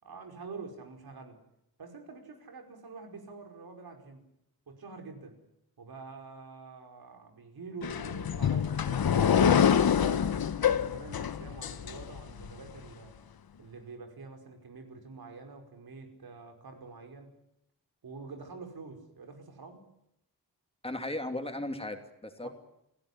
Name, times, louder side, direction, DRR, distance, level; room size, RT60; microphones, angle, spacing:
voice 1, 0.0-1.4 1.8-4.3 4.7-5.4 5.8-10.2 10.7-13.1 13.6-17.3 18.0-19.9 22.4-22.5, right 4 dB, 90° right, 5 dB, 5.2 m, -47 dB
sound 1, 7.8-12.5, left 8 dB, 80° left, 1.1 m, -26 dB
voice 2, 20.8-22.5, left 1 dB, 15° left, 5 dB, 2.9 m, -36 dB
29.0 x 16.5 x 9.9 m, 0.81 s
wide cardioid pair, 145°, 36 cm